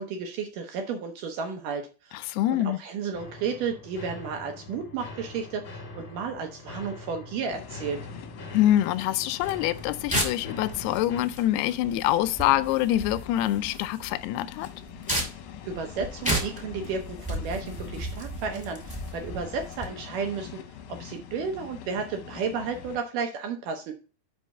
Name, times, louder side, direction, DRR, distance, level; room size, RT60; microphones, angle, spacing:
voice 1, 0.0-8.0 15.6-23.9, right 5 dB, 75° right, 2.0 m, -33 dB
voice 2, 2.3-2.8 8.5-14.7, left 13 dB, 90° left, 2.6 m, -25 dB
sound 1, 3.1-11.2, left 2 dB, 55° left, 1.4 m, -43 dB
sound 2, 7.5-23.0, left 9 dB, 75° left, 2.0 m, -44 dB
sound 3, 9.4-19.9, equal, 5° right, 1.7 m, -34 dB
5.6 x 5.5 x 6.4 m
omnidirectional pair, 4.6 m